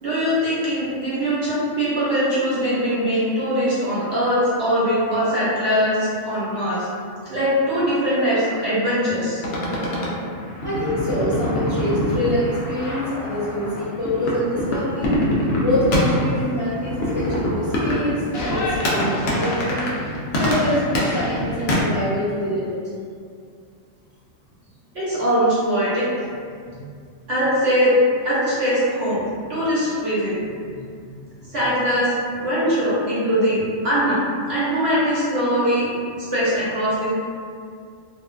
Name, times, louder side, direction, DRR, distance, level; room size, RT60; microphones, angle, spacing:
voice 1, 0.0-6.9 7.2-9.4 24.9-26.1 27.3-28.0 28.2-29.2 29.5-30.4 31.5-35.9 36.2-37.1, equal, 60° right, -11 dB, 1.0 m, -21 dB
sound 1, 9.4-21.8, left 1 dB, 65° left, 0.7 m, -25 dB
voice 2, 10.6-15.2 15.5-19.9 20.4-22.8 26.7-26.8 30.7-31.3, left 1 dB, 25° left, -15 dB, 0.8 m, -25 dB
2.5 x 2.3 x 2.2 m, 2.2 s
omnidirectional pair, 1.3 m